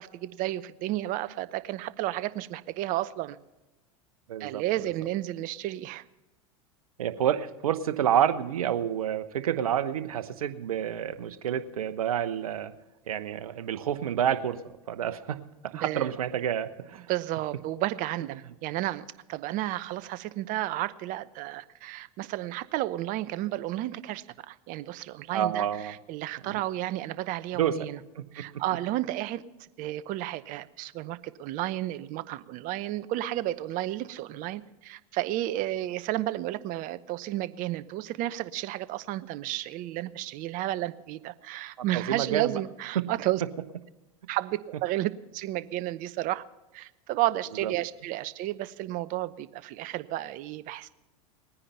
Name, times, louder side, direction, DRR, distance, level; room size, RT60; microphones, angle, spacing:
voice 1, 0.0-3.4 4.4-6.0 15.7-16.1 17.1-28.0 28.3-43.4 44.3-46.4 46.7-50.9, right 15 dB, 50° right, 16 dB, 0.8 m, -32 dB
voice 2, 4.3-4.6 7.0-12.7 13.1-17.1 25.3-25.9 26.5-26.6 27.5-27.8 28.1-28.6 41.9-42.5 47.6-47.7, right 10 dB, 80° right, 11 dB, 1.0 m, -29 dB
20.0 x 9.9 x 5.6 m, 1.0 s
hypercardioid pair, 95°, 18 cm